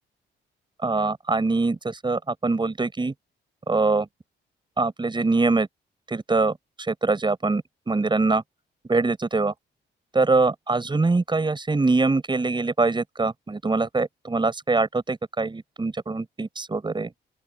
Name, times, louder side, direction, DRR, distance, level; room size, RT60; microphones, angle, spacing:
voice 1, 0.8-3.1 3.7-4.1 4.8-5.7 6.1-6.6 6.9-8.4 8.9-9.5 10.1-17.1, right 3 dB, 25° right, 7.1 m, -23 dB
open air
cardioid pair, 90°, 20 cm